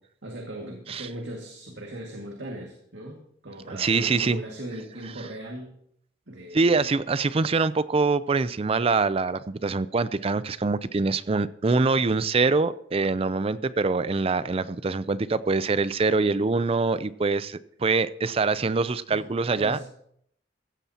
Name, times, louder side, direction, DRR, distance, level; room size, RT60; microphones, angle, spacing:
voice 1, 0.2-3.2 3.4-5.8 6.3-6.9 7.3-7.6 19.1-19.3 19.5-19.9, right 1 dB, 75° right, 0 dB, 2.1 m, -38 dB
voice 2, 3.8-4.4 6.5-19.9, right 4 dB, 30° right, 16 dB, 0.4 m, -24 dB
15.5 x 15.0 x 2.9 m, 0.69 s
head